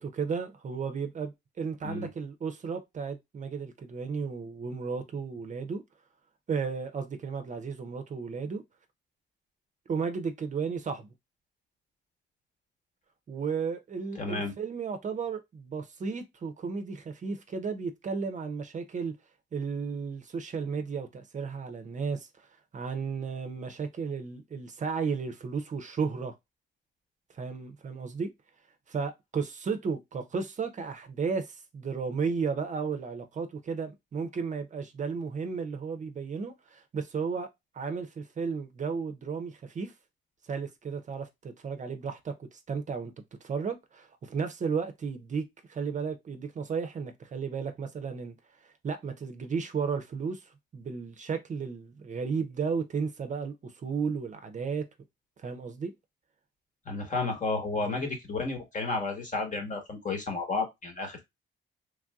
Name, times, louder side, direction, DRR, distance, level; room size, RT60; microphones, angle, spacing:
voice 1, 0.0-5.8 6.5-8.6 9.9-11.1 13.3-19.1 19.5-22.5 22.7-26.3 27.3-28.3 28.9-37.5 37.7-39.9 40.5-43.1 43.4-48.3 48.6-54.9 55.4-55.9 57.8-58.0, right 5 dB, 40° right, 0.5 m, -34 dB
voice 2, 14.1-14.5 56.8-61.2, left 3 dB, 40° left, 1.2 m, -32 dB
3.2 x 2.6 x 2.3 m
cardioid pair, 90°, 20 cm